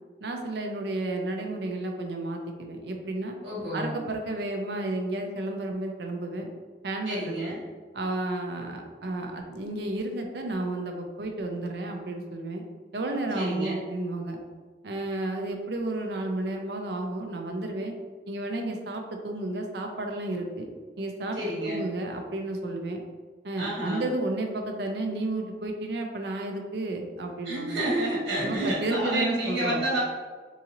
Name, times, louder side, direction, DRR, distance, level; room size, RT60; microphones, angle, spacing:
voice 1, 0.2-3.4 3.7-6.5 6.8-7.6 7.9-12.6 12.9-14.4 14.8-17.9 18.3-20.7 21.0-21.4 21.7-23.0 23.4-27.8 28.4-29.8, right 2 dB, 65° right, 3 dB, 0.5 m, -32 dB
voice 2, 3.4-3.9 7.0-7.6 13.3-13.8 17.7-17.8 21.3-21.8 23.6-24.1 27.4-30.0, right 1 dB, 90° right, -6 dB, 1.4 m, -29 dB
3.6 x 2.8 x 2.9 m, 1.5 s
head